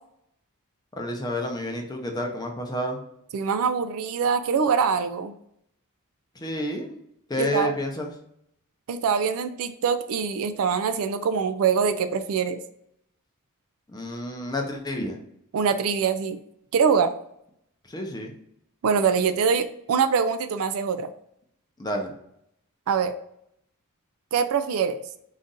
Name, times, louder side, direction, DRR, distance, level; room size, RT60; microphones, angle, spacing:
voice 1, 1.0-3.0 6.4-7.0 7.3-8.1 13.9-15.2 17.9-18.3 21.8-22.1, left 1 dB, 20° left, 2 dB, 0.6 m, -30 dB
voice 2, 3.3-5.3 7.4-7.7 8.9-12.6 15.5-16.4 16.7-17.1 18.8-21.1 22.9-23.1 24.3-25.0, right 6 dB, 65° right, 11 dB, 0.4 m, -24 dB
4.0 x 2.5 x 3.7 m, 0.73 s
head